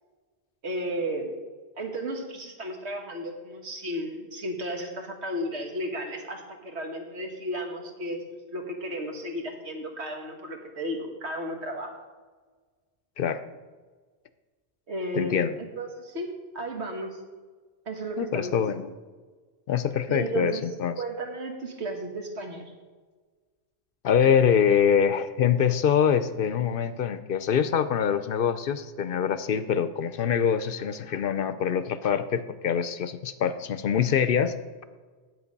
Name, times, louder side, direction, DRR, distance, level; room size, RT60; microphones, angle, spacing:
voice 1, 0.6-1.3 1.8-8.2 8.5-11.9 14.9-17.2 17.9-18.6 20.1-20.6 21.0-22.7, right 1 dB, 85° right, 2 dB, 1.8 m, -34 dB
voice 2, 15.1-15.5 18.2-18.9 19.7-21.0 24.0-34.6, left 8 dB, 65° left, 12 dB, 0.7 m, -24 dB
9.7 x 7.9 x 5.3 m, 1.4 s
omnidirectional pair, 1.1 m